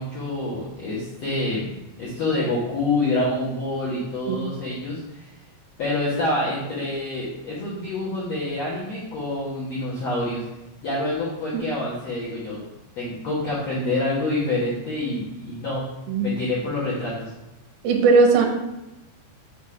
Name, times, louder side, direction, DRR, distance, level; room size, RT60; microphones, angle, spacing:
voice 1, 0.0-1.7 2.0-5.3 5.8-10.4 10.8-12.6 13.0-15.8 16.2-17.3, left 2 dB, 60° left, -8 dB, 1.9 m, -27 dB
voice 2, 17.8-18.5, right 4 dB, 80° right, 2 dB, 2.4 m, -17 dB
6.2 x 3.8 x 4.9 m, 0.96 s
omnidirectional pair, 4.5 m